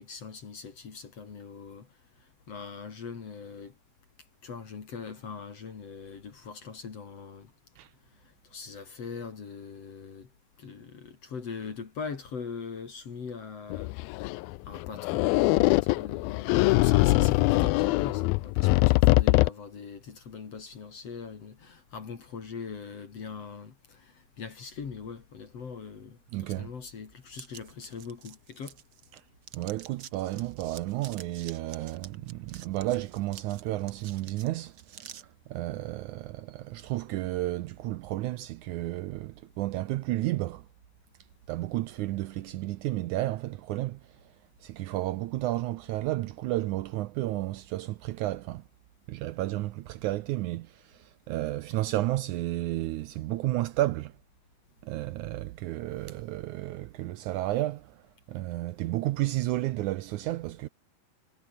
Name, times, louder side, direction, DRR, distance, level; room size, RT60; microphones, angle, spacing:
voice 1, 0.0-1.9 2.5-3.7 4.4-7.5 8.5-10.3 10.6-14.0 14.6-28.8, left 5 dB, 45° left, 3.4 m, -41 dB
sound 1, 13.7-19.5, left 22 dB, 85° left, 2.4 m, -23 dB
voice 2, 26.3-26.7 29.1-29.2 29.5-40.7 41.5-44.0 44.6-48.6 49.1-54.1 54.8-58.0 58.3-60.7, right 16 dB, 85° right, 1.7 m, -32 dB
sound 2, 27.3-29.2 29.4-35.2, right 9 dB, 65° right, 1.2 m, -48 dB
omnidirectional pair, 4.2 m